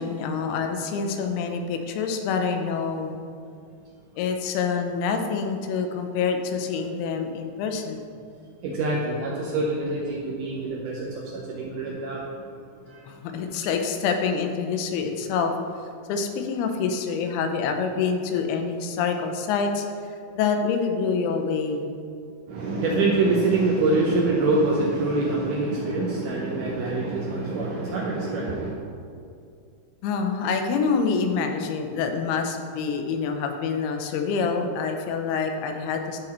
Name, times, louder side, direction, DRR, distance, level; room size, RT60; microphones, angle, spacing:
voice 1, 0.0-3.2 4.2-8.0 13.1-15.5 16.1-19.9 20.4-21.9 30.0-36.2, left 5 dB, 90° left, 5 dB, 2.7 m, -26 dB
voice 2, 8.6-12.5 12.9-13.0 13.3-13.5 22.5-28.8, right 2 dB, 75° right, -3 dB, 1.9 m, -25 dB
11.0 x 3.9 x 4.3 m, 2.4 s
omnidirectional pair, 4.5 m